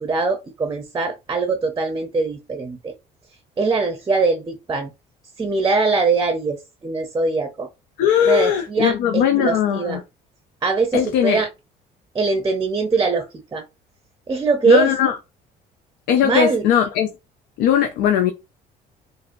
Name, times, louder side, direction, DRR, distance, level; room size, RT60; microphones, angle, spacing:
voice 1, 0.0-2.9 3.6-4.9 5.4-7.7 8.2-10.0 10.6-11.5 12.1-13.6 14.3-14.9 16.2-16.7, right 4 dB, 20° right, 0.5 m, -22 dB
voice 2, 8.0-10.0 10.9-11.4 14.6-15.2 16.1-17.1 17.6-18.3, left 9 dB, 90° left, 0.4 m, -19 dB
3.7 x 2.0 x 2.5 m
cardioid pair, 110°, 17 cm